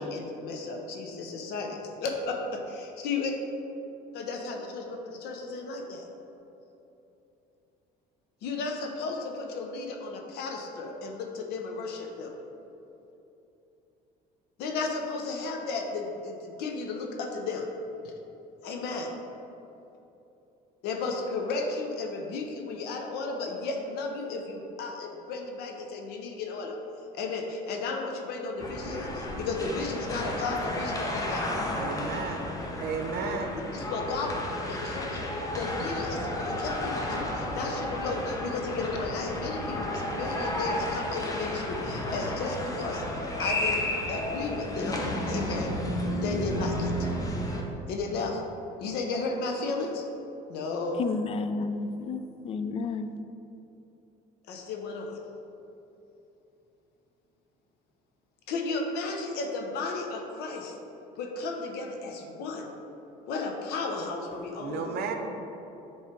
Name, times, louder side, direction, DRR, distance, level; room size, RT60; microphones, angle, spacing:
voice 1, 0.0-3.3 4.1-6.1 8.4-12.3 14.6-17.7 18.0-18.1 18.6-19.1 20.8-26.7 27.1-31.4 33.7-35.2 35.5-43.0 43.4-45.8 46.2-47.1 47.9-48.4 48.8-50.1 50.5-51.0 54.5-55.2 58.5-60.7 61.2-62.7 63.3-65.0, left 3 dB, 75° left, 2 dB, 0.8 m, -34 dB
sound 1, 28.6-47.6, left 1 dB, 20° left, 0.7 m, -32 dB
voice 2, 31.8-32.4 32.8-33.5 64.6-65.1, right 5 dB, 65° right, 5 dB, 0.7 m, -33 dB
voice 3, 51.0-53.1, left 4 dB, 35° left, 9 dB, 0.3 m, -31 dB
7.3 x 3.2 x 4.4 m, 2.9 s
cardioid pair, 120°, 17 cm